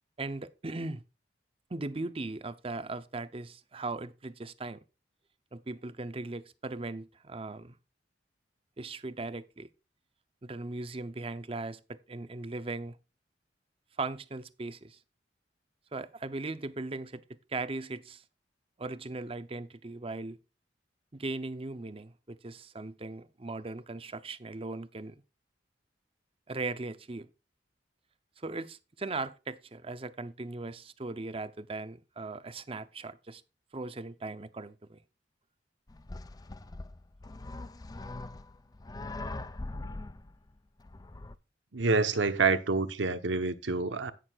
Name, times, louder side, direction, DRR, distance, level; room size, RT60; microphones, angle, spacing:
voice 1, 0.2-1.0 1.7-4.8 5.5-7.8 8.8-9.7 10.4-13.0 14.0-15.0 15.9-18.2 18.8-20.4 21.1-25.2 26.5-27.3 28.4-33.4 33.7-35.0, right 3 dB, 30° right, 0.7 m, -38 dB
sound 1, 35.9-41.4, left 2 dB, 20° left, 0.5 m, -42 dB
voice 2, 41.7-44.1, right 4 dB, 90° right, 1.0 m, -27 dB
16.5 x 6.4 x 2.4 m
head